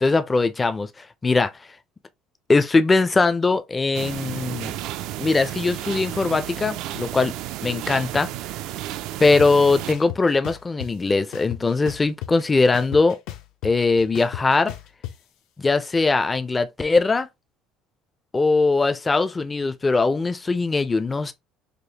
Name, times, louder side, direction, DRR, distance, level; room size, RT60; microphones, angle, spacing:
voice 1, 0.0-1.5 2.5-4.7 5.2-7.3 7.6-8.3 9.2-13.2 13.6-14.7 15.6-17.3 18.3-21.3, left 3 dB, 15° left, 0.4 m, -21 dB
sound 1, 3.9-9.9, right 14 dB, 70° right, 0.3 m, -32 dB
sound 2, 9.4-9.5 9.9-10.9 11.3-12.4 12.7-15.1, left 13 dB, 75° left, 0.6 m, -34 dB
5.0 x 2.1 x 2.8 m
cardioid pair, 150°, 0 cm